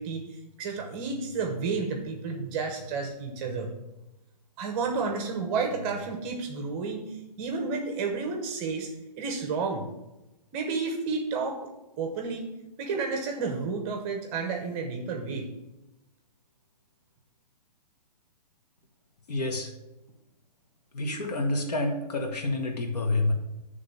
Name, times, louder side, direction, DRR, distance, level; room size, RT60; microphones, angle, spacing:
voice 1, 0.0-3.7 4.6-8.9 9.2-9.9 10.5-11.7 12.0-12.5 12.8-15.5, right 4 dB, 20° right, 3 dB, 0.7 m, -31 dB
voice 2, 19.3-19.7 20.9-23.3, left 2 dB, 70° left, 3 dB, 1.3 m, -28 dB
8.9 x 3.5 x 5.4 m, 0.96 s
hypercardioid pair, 160°, 21 cm